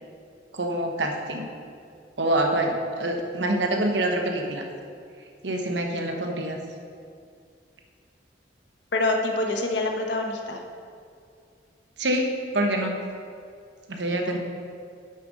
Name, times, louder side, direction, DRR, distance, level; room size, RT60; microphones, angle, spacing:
voice 1, 0.5-1.5 2.2-4.6 5.4-6.6 12.0-12.3 12.5-12.9 13.9-14.4, right 1 dB, 75° right, 3 dB, 1.1 m, -26 dB
voice 2, 8.9-10.6 14.1-14.4, left 2 dB, 75° left, 3 dB, 1.0 m, -26 dB
7.7 x 6.6 x 5.2 m, 2.3 s
head